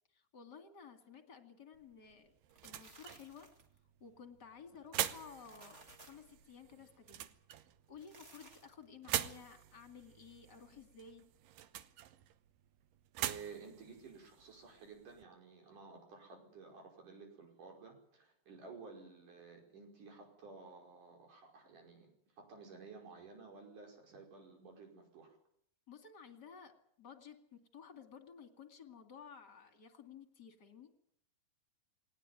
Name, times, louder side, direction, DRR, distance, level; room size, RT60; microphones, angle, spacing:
voice 1, 0.1-2.3 2.6-3.5 4.0-7.3 7.9-11.3 25.9-30.9, left 6 dB, 35° left, 7 dB, 2.4 m, -55 dB
sound 1, 1.7-15.2, right 12 dB, 85° right, 2.7 m, -45 dB
sound 2, 2.3-3.8 5.2-6.3 7.8-8.9, right 2 dB, 25° right, 1.7 m, -59 dB
voice 2, 13.2-25.4, right 4 dB, 70° right, 2 dB, 6.8 m, -54 dB
20.0 x 18.5 x 9.4 m, 0.68 s
omnidirectional pair, 3.8 m